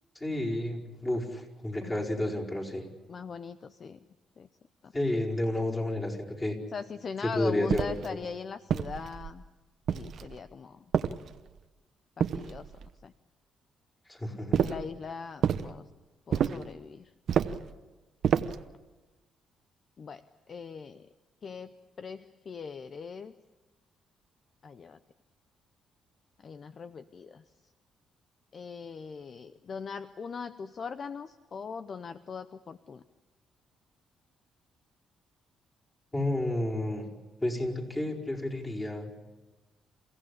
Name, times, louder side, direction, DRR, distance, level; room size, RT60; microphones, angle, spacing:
voice 1, 0.1-2.8 4.9-6.6 7.2-7.9 14.1-14.6 36.1-37.1 37.4-39.1, left 1 dB, 20° left, -1 dB, 5.0 m, -31 dB
voice 2, 3.1-4.0 4.4-4.5 4.8-4.9 6.7-9.4 9.9-10.8 12.2-12.7 13.0-13.1 14.6-15.9 16.3-17.1 20.0-20.2 20.5-21.1 21.4-21.7 22.0-23.3 24.6-25.0 26.4-27.4 28.5-33.0, left 5 dB, 45° left, 12 dB, 0.7 m, -40 dB
sound 1, 7.7-8.1 8.7-9.3 9.9-10.4 10.9-11.6 12.2-12.9 14.5-14.9 15.4-15.7 16.3-16.7 17.3-17.7 18.2-18.7, right 8 dB, 65° right, 0.8 m, -29 dB
28.5 x 15.5 x 8.6 m, 1.2 s
cardioid pair, 90°, 0 cm